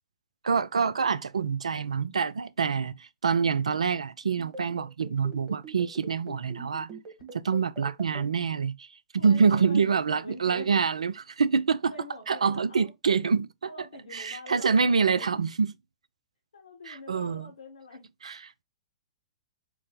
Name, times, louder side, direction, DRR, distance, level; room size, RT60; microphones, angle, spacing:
voice 1, 0.4-6.9 7.3-8.9 9.1-11.9 12.3-13.5 14.1-15.7 16.9-17.5 18.2-18.4, right 5 dB, 80° right, 0.3 m, -26 dB
sound 1, 4.5-8.2, right 3 dB, 25° right, 1.4 m, -43 dB
voice 2, 9.2-10.7 11.9-12.9 13.6-15.3 16.5-18.0, left 3 dB, 80° left, 0.9 m, -45 dB
4.4 x 2.0 x 3.7 m
hypercardioid pair, 110°, 3 cm